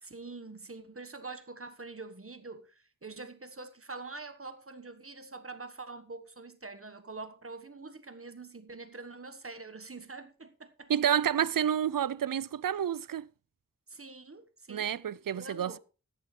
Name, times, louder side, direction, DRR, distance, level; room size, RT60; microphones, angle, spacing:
voice 1, 0.0-10.9 13.9-14.9 15.4-15.8, right 3 dB, 40° right, 1.4 m, -45 dB
voice 2, 10.9-13.3 14.7-15.8, right 9 dB, 80° right, 0.5 m, -29 dB
13.5 x 11.0 x 3.3 m
wide cardioid pair, 60°, 33 cm